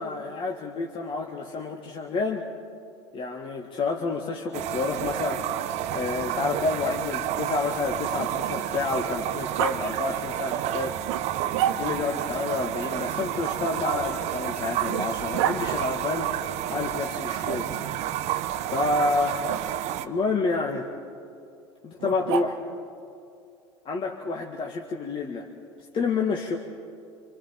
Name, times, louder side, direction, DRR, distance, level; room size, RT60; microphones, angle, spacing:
voice 1, 0.0-2.5 3.1-5.4 5.9-11.0 11.7-16.3 16.7-17.9 18.7-19.4 20.0-20.9 21.8-22.6 23.9-25.5 25.9-26.6, left 3 dB, 35° left, 1 dB, 1.8 m, -29 dB
sound 1, 4.5-20.1, right 12 dB, 50° right, 0.9 m, -30 dB
Growling, 5.5-8.9 9.6-9.8 11.1-12.2 13.5-15.6 17.5-18.2 19.5-19.6 22.0-22.8, right 10 dB, 65° right, 1.3 m, -33 dB
27.0 x 26.0 x 4.5 m, 2.4 s
hypercardioid pair, 80°, 15 cm